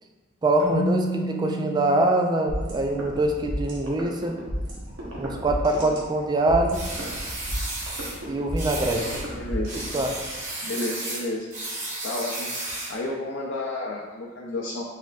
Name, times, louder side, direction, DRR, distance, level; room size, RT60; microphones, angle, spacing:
voice 1, 0.4-4.4 5.2-6.9 8.3-9.2 9.9-10.2, right 2 dB, 20° right, 3 dB, 0.3 m, -24 dB
Keyboard (musical), 0.6-3.3, right 1 dB, 20° left, 0.9 m, -32 dB
sound 1, 2.5-10.5, equal, 70° right, 1.0 m, -33 dB
sound 2, 6.7-8.2 8.6-9.3 9.7-13.0, right 2 dB, 40° right, 0.9 m, -33 dB
voice 2, 9.3-9.7 10.6-11.5 12.0-12.5 12.9-14.8, left 2 dB, 65° left, -4 dB, 0.5 m, -31 dB
4.3 x 3.5 x 2.4 m, 1.4 s
head